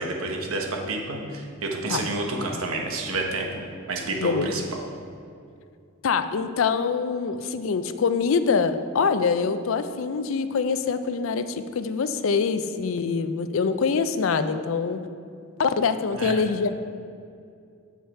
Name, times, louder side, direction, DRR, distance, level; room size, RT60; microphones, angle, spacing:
voice 1, 0.0-4.6 16.1-16.3, right 2 dB, 85° right, 1 dB, 1.1 m, -29 dB
voice 2, 4.2-4.6 6.0-15.0 15.6-16.7, left 5 dB, 70° left, 10 dB, 0.4 m, -24 dB
7.3 x 7.1 x 4.4 m, 2.4 s
head